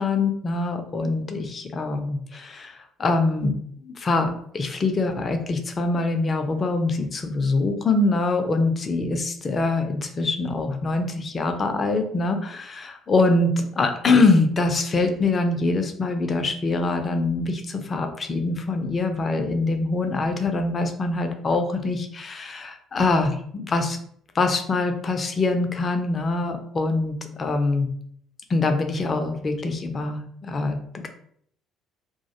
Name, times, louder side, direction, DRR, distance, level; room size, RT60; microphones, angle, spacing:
voice 1, 0.0-24.0 24.3-27.9 28.5-31.1, left 3 dB, 35° left, 5 dB, 0.4 m, -24 dB
2.2 x 2.1 x 2.7 m, 0.65 s
figure-of-eight pair, 50°, 0 cm